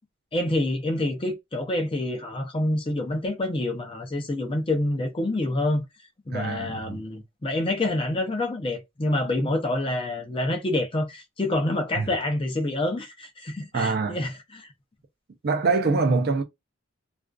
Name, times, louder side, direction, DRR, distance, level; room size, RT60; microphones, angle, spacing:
voice 1, 0.3-5.8 6.3-14.7, left 1 dB, 25° left, 0.5 m, -27 dB
voice 2, 6.3-7.0 12.0-12.1 13.7-14.2 15.4-16.4, right 4 dB, 45° right, 0.4 m, -24 dB
2.4 x 2.3 x 2.2 m
head